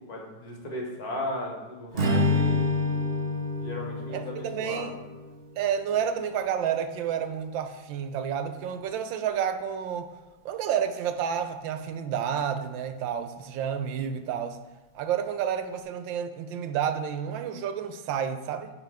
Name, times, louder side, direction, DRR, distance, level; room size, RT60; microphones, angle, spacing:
voice 1, 0.1-3.0 3.6-5.0, left 1 dB, 55° left, -1 dB, 1.7 m, -36 dB
Strum, 1.9-6.4, left 2 dB, 45° right, 0.7 m, -28 dB
voice 2, 4.1-5.0 5.6-10.1 10.4-14.6 14.9-18.7, right 8 dB, 80° right, 9 dB, 1.3 m, -30 dB
10.5 x 3.6 x 4.7 m, 1.2 s
omnidirectional pair, 2.1 m